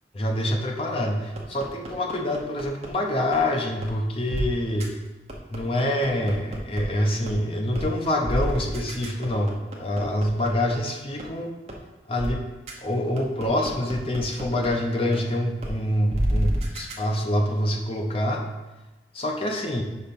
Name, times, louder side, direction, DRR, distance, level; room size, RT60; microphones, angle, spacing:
voice 1, 0.1-4.9 5.5-11.5 12.1-12.4 12.8-18.5 19.1-19.8, left 1 dB, 30° left, 2 dB, 0.7 m, -26 dB
sound 1, 1.4-2.9 3.3-3.4 3.8-3.9 4.3-4.4 4.8-4.9 5.3-6.8 7.3-7.4 7.7-7.9 8.2-10.7 11.2-11.3 11.7-11.8 12.2-12.3 12.7-12.8 13.2-14.7 15.1-15.2 15.6-15.7 16.1-16.9, right 1 dB, 35° right, 0.9 m, -28 dB
5.4 x 4.3 x 5.3 m, 1.1 s
head